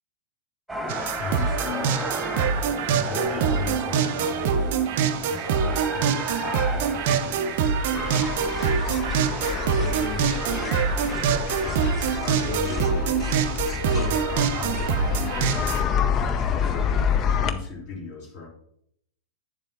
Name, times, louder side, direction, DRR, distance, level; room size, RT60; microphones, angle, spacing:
sound 1, 0.7-11.4, equal, ahead, 1.7 m, -35 dB
sound 2, 0.9-15.8, right 7 dB, 50° right, 0.5 m, -25 dB
voice 1, 1.2-2.0 2.8-4.8 5.3-9.3 9.7-10.8 11.6-13.2 13.9-16.1 16.5-18.5, left 3 dB, 45° left, -3 dB, 3.3 m, -37 dB
sound 3, 8.0-17.5, left 7 dB, 30° left, 0.6 m, -28 dB
8.8 x 7.3 x 2.8 m, 0.72 s
figure-of-eight pair, 90°, 0 cm